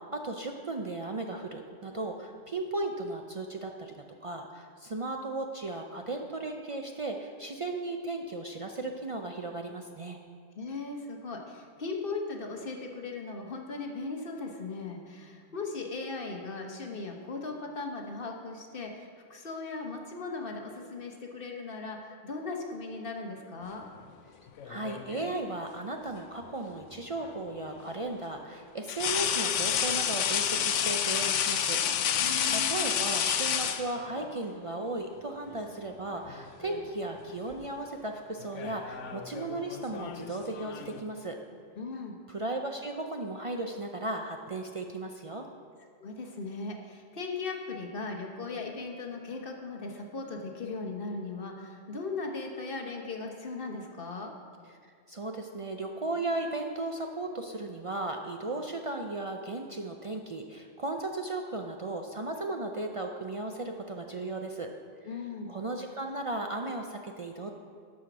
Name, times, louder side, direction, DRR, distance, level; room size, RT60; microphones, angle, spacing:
voice 1, 0.0-10.2 24.6-31.8 32.1-41.4 42.3-45.5 55.1-64.7 65.0-65.2 65.5-67.5, right 2 dB, 50° right, 3 dB, 0.4 m, -36 dB
voice 2, 10.5-23.9 32.2-32.8 41.8-42.2 46.0-54.3 65.0-65.5, left 3 dB, 50° left, 2 dB, 1.1 m, -38 dB
sound 1, 24.6-25.4 27.2-27.4 28.9-34.3 35.5-35.7 36.1-36.9 37.2-37.5 38.4-41.0, left 9 dB, 80° left, 0.9 m, -30 dB
12.5 x 5.0 x 6.0 m, 2.1 s
omnidirectional pair, 1.2 m